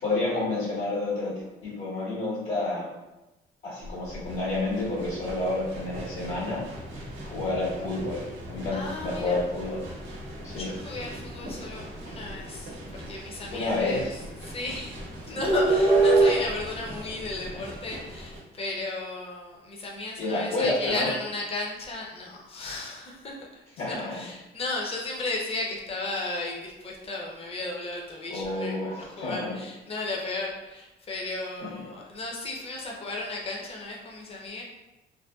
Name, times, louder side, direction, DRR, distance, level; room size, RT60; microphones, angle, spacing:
voice 1, 0.0-1.3 1.6-2.9 3.6-6.6 7.2-8.2 8.5-9.8 10.4-10.7 13.5-14.2 17.5-17.6 20.2-21.1 23.8-24.2 28.3-29.6 31.6-31.7, left 2 dB, 75° left, -7 dB, 1.3 m, -29 dB
sound 1, 3.9-18.4, right 2 dB, 70° right, 0.7 m, -30 dB
voice 2, 8.7-9.4 10.5-14.1 14.4-34.6, left 2 dB, 30° left, -2 dB, 0.6 m, -35 dB
2.6 x 2.1 x 2.3 m, 1.0 s
cardioid pair, 85°, 20 cm